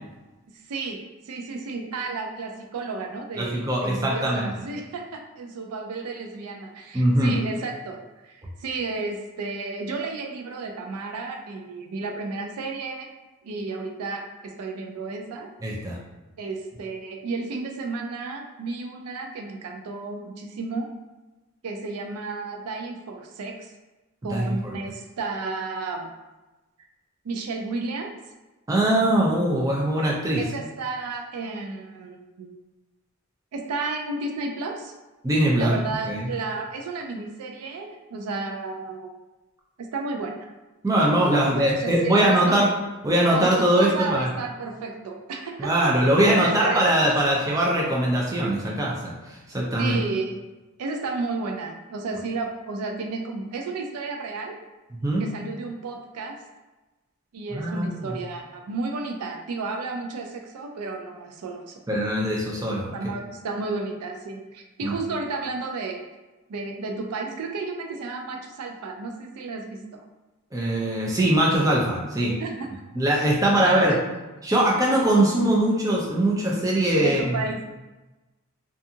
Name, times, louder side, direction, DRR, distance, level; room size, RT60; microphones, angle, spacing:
voice 1, 0.7-8.0 8.2-13.1 13.4-15.5 16.4-20.9 21.6-23.7 24.2-26.1 27.2-28.1 30.4-32.5 33.5-34.9 35.6-39.1 39.8-40.5 41.4-42.6 43.3-45.7 46.4-47.1 49.8-50.4 50.8-54.5 55.2-56.4 57.3-61.8 62.9-66.0 66.5-70.0 72.4-72.7 73.2-74.1 77.0-77.6, right 3 dB, 85° right, 3 dB, 0.4 m, -32 dB
voice 2, 3.4-4.5 6.9-7.3 15.6-16.0 24.3-24.7 28.7-30.4 35.2-35.7 36.0-36.3 40.8-42.7 43.0-44.3 45.6-50.0 55.0-55.2 57.5-58.1 61.9-62.9 64.8-64.9 70.5-72.3 73.0-74.0 74.4-77.2, right 1 dB, 15° right, -4 dB, 0.4 m, -21 dB
2.6 x 2.3 x 2.7 m, 1.1 s
head